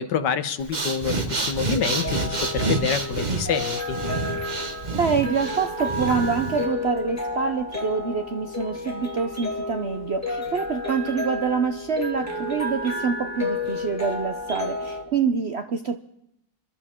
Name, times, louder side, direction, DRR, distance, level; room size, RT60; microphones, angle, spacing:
voice 1, 0.0-4.0, left 7 dB, 75° left, 11 dB, 1.6 m, -27 dB
Breathing, 0.6-6.7, right 3 dB, 30° right, 1.2 m, -28 dB
sound 1, 1.7-15.0, left 2 dB, 10° left, 2.2 m, -31 dB
voice 2, 4.9-16.0, right 5 dB, 60° right, 8 dB, 0.7 m, -26 dB
26.5 x 12.0 x 3.6 m, 0.78 s
omnidirectional pair, 1.9 m